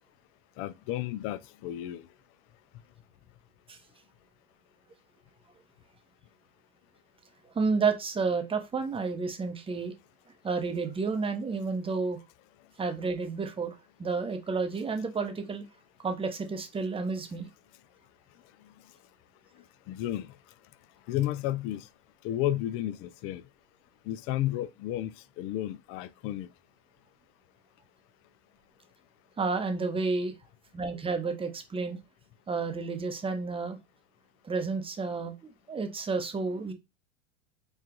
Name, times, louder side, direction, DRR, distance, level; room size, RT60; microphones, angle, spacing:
voice 1, 0.6-2.1 19.9-20.3 21.1-21.9 22.2-23.4 24.1-26.5, left 13 dB, 40° left, 0.4 m, -32 dB
voice 2, 7.5-9.9 10.4-12.2 12.8-15.6 16.0-17.5 29.4-30.3 30.7-32.0 32.5-33.8 34.4-35.3 35.7-36.7, right 4 dB, 15° right, 0.8 m, -31 dB
4.8 x 2.4 x 3.7 m
hypercardioid pair, 105°, 37 cm